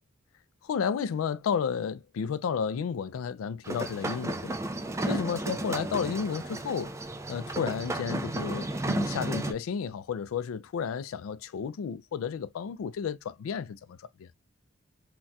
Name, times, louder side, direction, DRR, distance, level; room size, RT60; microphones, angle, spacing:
voice 1, 0.6-4.6 5.0-6.9 7.3-14.3, left 6 dB, 85° left, 0.3 m, -32 dB
sound 1, 3.6-9.5, right 1 dB, 15° right, 0.3 m, -33 dB
4.0 x 2.2 x 2.2 m
head